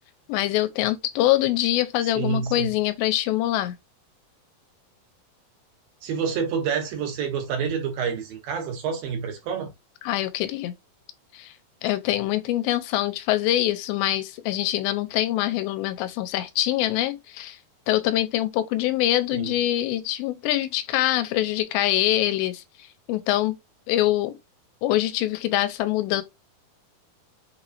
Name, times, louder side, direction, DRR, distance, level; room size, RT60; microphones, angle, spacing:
voice 1, 0.3-3.8 10.0-10.7 11.3-11.5 11.8-17.6 17.9-22.6 23.1-23.6 23.9-24.4 24.8-26.2, left 14 dB, 90° left, 2.4 m, -24 dB
voice 2, 2.1-2.7 6.0-9.7 19.3-19.5, right 6 dB, 75° right, 2.8 m, -28 dB
6.0 x 3.0 x 2.5 m
omnidirectional pair, 4.2 m